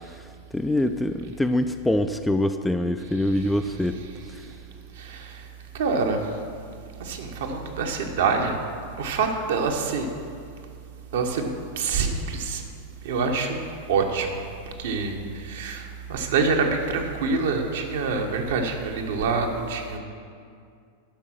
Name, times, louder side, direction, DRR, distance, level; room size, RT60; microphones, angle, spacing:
voice 1, 0.5-4.0, left 1 dB, 5° left, 7 dB, 0.4 m, -24 dB
voice 2, 3.2-3.6 4.0-4.1 4.4-4.5 4.9-5.5 5.7-6.3 7.0-8.6 9.0-10.1 11.1-11.5 11.8-12.6 13.0-14.4 14.8-20.0, right 4 dB, 60° right, 3 dB, 1.1 m, -26 dB
10.0 x 6.1 x 6.2 m, 2.3 s
figure-of-eight pair, 90°, 0 cm